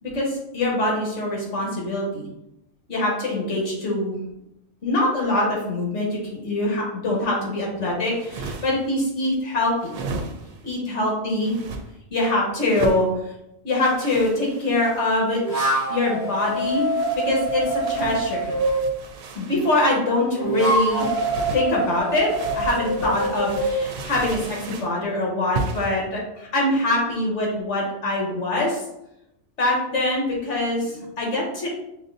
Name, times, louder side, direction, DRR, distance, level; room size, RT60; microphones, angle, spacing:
voice 1, 0.0-2.3 2.9-4.2 4.8-10.0 10.6-11.6 12.1-13.1 13.6-15.4 15.9-16.8 17.2-18.5 19.3-21.1 21.5-28.8 29.6-31.7, left 1 dB, 65° left, -3 dB, 1.5 m, -24 dB
sound 1, 8.0-8.9 9.8-10.7 11.4-11.8 12.6-13.1 13.8-15.2 16.2-20.0 20.9-21.7 22.3-24.9 25.5-26.0, right 3 dB, 90° right, 1.0 m, -35 dB
sound 2, 15.4-18.9 20.1-23.8, right 1 dB, 25° left, 1.2 m, -25 dB
5.9 x 2.5 x 2.6 m, 0.85 s
omnidirectional pair, 1.4 m